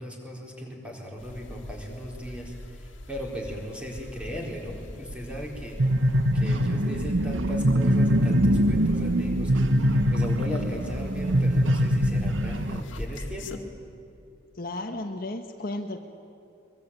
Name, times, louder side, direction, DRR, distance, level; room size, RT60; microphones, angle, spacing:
voice 1, 0.0-5.9 6.3-13.6, equal, 5° right, -1 dB, 4.3 m, -37 dB
sound 1, 1.2-13.6, left 1 dB, 80° left, 2.2 m, -40 dB
sound 2, 5.8-12.8, equal, 80° right, 1.1 m, -23 dB
voice 2, 14.5-16.0, left 2 dB, 50° left, 5 dB, 1.3 m, -33 dB
23.0 x 23.0 x 9.0 m, 2.6 s
head